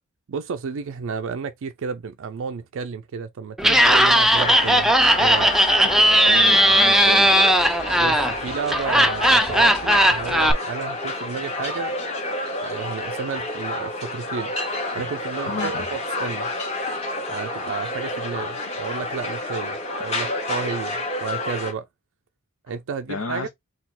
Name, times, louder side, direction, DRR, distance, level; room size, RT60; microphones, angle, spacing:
voice 1, 0.3-5.5 8.0-12.0 12.6-14.5 14.9-16.5 17.3-21.9 22.7-23.5, right 5 dB, 65° right, 0.4 m, -32 dB
Laughter, 3.6-10.5, equal, ahead, 0.4 m, -17 dB
sound 1, 4.4-21.7, left 2 dB, 30° left, 1.4 m, -29 dB
voice 2, 6.2-7.4 15.5-15.8 23.1-23.5, left 3 dB, 80° left, 0.8 m, -31 dB
4.2 x 2.3 x 4.0 m
head